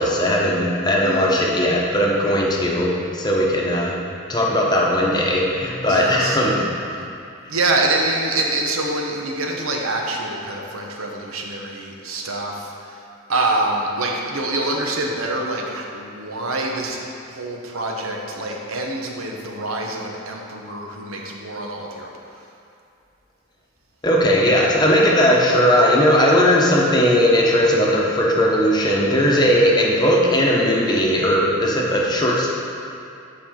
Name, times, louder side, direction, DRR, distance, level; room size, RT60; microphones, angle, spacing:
voice 1, 0.0-3.9 4.3-6.6 24.0-32.5, equal, 20° left, -3 dB, 0.9 m, -18 dB
voice 2, 1.0-1.4 5.9-6.4 7.0-7.1 7.5-13.0 13.3-17.0 17.3-22.5, right 2 dB, 90° right, 0 dB, 1.0 m, -25 dB
10.0 x 4.7 x 3.8 m, 2.6 s
head